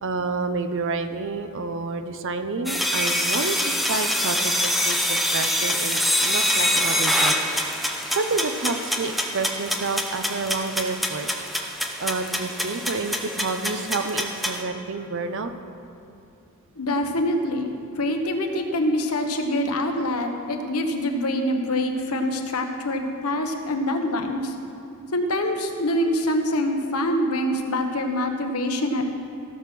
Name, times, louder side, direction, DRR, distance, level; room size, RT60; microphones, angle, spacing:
voice 1, 0.0-7.4 8.1-11.3 12.0-15.5, right 3 dB, 60° right, 8 dB, 0.7 m, -29 dB
sound 1, 2.7-14.6, equal, ahead, 0.7 m, -25 dB
voice 2, 16.8-24.5 25.1-29.2, left 1 dB, 75° left, 4 dB, 1.1 m, -25 dB
15.5 x 6.5 x 6.1 m, 2.7 s
head